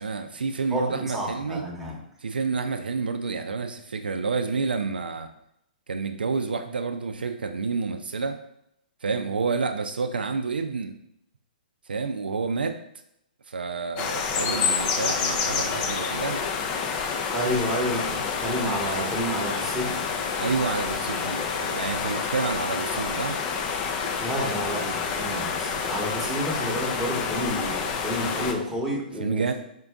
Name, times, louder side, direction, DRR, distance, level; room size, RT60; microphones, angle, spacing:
voice 1, 0.0-1.6 2.2-5.3 5.9-8.4 9.0-10.9 11.9-12.8 13.5-16.4 20.4-23.4 29.2-29.5, right 4 dB, 85° right, 7 dB, 0.4 m, -29 dB
voice 2, 0.7-2.0 17.3-20.0 24.2-29.5, equal, 5° right, -4 dB, 0.9 m, -30 dB
sound 1, 14.0-28.5, left 5 dB, 30° left, 0.4 m, -28 dB
4.4 x 2.5 x 3.4 m, 0.77 s
hypercardioid pair, 130°, 5 cm